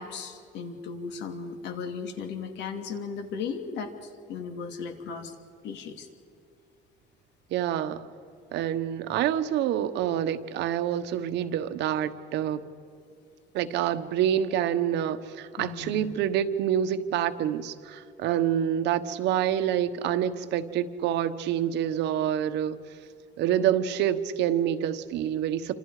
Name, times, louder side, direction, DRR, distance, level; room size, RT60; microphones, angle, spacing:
voice 1, 0.0-5.3 5.6-6.1 15.6-16.1, left 5 dB, 80° left, 5 dB, 2.8 m, -36 dB
voice 2, 7.5-8.1 8.5-12.6 13.5-22.8 23.4-25.7, right 10 dB, 85° right, 10 dB, 1.3 m, -27 dB
28.5 x 26.5 x 5.0 m, 2.4 s
cardioid pair, 170°, 18 cm